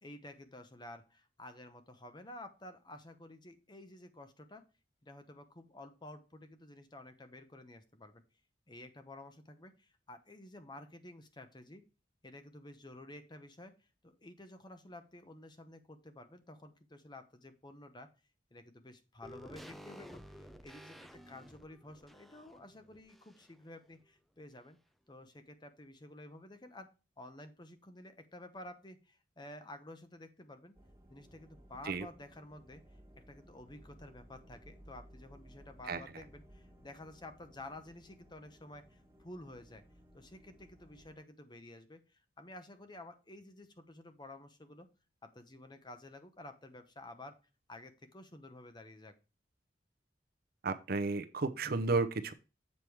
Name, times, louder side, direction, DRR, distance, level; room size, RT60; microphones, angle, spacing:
voice 1, 0.0-4.6 5.0-8.2 8.7-11.8 12.2-13.8 14.0-18.1 18.5-24.8 25.1-26.9 27.2-30.7 31.1-32.8 33.3-39.8 40.1-44.9 45.2-47.4 47.7-49.1, left 1 dB, 25° left, 8 dB, 0.9 m, -52 dB
sound 1, 19.2-23.7 24.0-24.1, equal, ahead, 0.5 m, -53 dB
sound 2, 30.7-41.2, equal, 15° right, 1.4 m, -59 dB
voice 2, 50.6-52.3, right 3 dB, 55° right, 9 dB, 0.7 m, -32 dB
7.5 x 5.0 x 4.6 m, 0.30 s
head